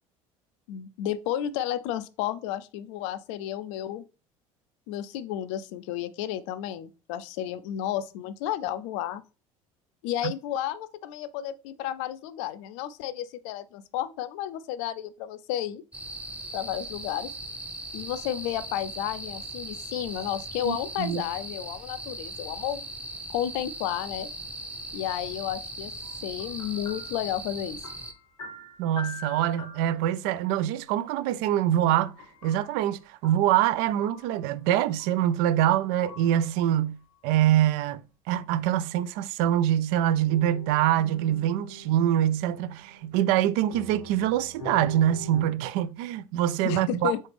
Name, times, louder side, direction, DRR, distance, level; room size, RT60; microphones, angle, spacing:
voice 1, 0.7-4.0 4.9-9.2 10.0-15.8 16.5-17.3 17.9-22.8 23.3-24.3 24.9-25.9 26.2-27.8 46.6-47.2, left 11 dB, 65° left, 0.4 m, -32 dB
sound 1, 15.9-28.1, right 1 dB, 10° right, 0.7 m, -39 dB
voice 2, 20.6-21.2 28.8-32.1 32.4-37.0 37.2-38.0 38.3-47.1, right 12 dB, 60° right, 0.4 m, -24 dB
sound 2, 26.0-30.7 31.9-33.6 34.0-34.6 35.0-35.4 36.0-36.5 40.3-43.4 43.7-45.4, left 3 dB, 80° left, 1.0 m, -45 dB
4.0 x 3.2 x 3.3 m
figure-of-eight pair, 65°, 17 cm